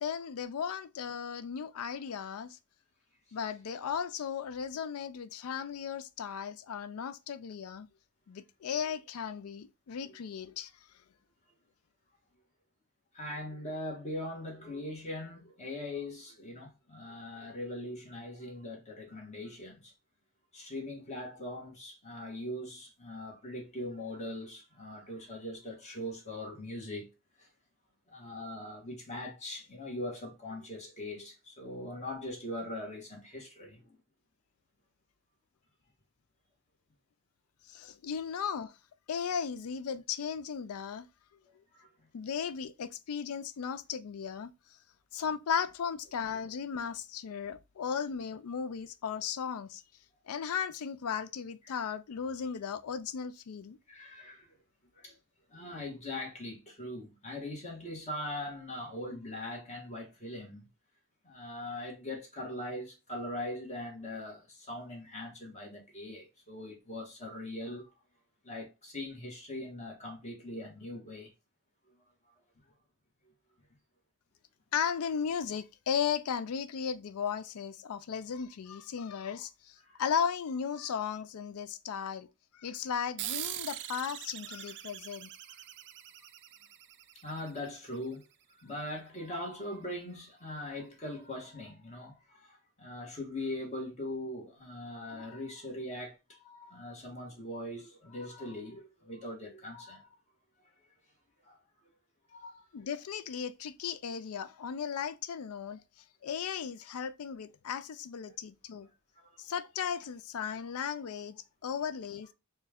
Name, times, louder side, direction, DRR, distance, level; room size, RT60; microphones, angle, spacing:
voice 1, 0.0-2.6 3.3-7.9 8.3-10.7 37.7-38.7 39.1-41.1 42.1-44.5 45.1-49.8 50.3-53.8 74.7-82.3 82.5-85.3 102.7-105.8 106.2-108.9 109.4-112.3, left 7 dB, 80° left, 0.4 m, -36 dB
voice 2, 13.1-19.9 20.5-27.1 27.4-27.5 28.1-34.0 41.7-41.9 51.7-51.8 53.9-54.6 54.9-55.1 55.5-60.7 61.2-67.9 68.4-71.3 79.8-80.0 87.2-88.2 88.5-100.2 101.4-101.6 102.3-102.6 108.2-108.3 109.2-109.3, left 1 dB, 35° left, 1.4 m, -41 dB
sound 1, 83.2-88.1, right 12 dB, 55° right, 0.4 m, -42 dB
4.4 x 2.3 x 3.4 m
head